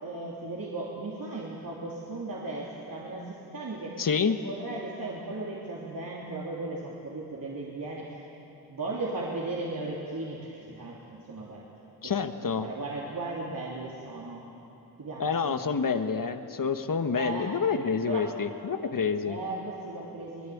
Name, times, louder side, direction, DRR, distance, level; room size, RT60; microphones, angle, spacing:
voice 1, 0.0-4.0 4.3-8.2 8.7-11.6 12.0-14.5 15.0-15.6 17.1-17.6 18.1-18.3 19.2-20.5, right 2 dB, 60° right, -5 dB, 3.2 m, -36 dB
voice 2, 4.0-4.4 12.0-12.7 15.2-19.4, left 5 dB, 60° left, 8 dB, 1.3 m, -28 dB
23.0 x 20.5 x 8.6 m, 2.9 s
cardioid pair, 60°, 37 cm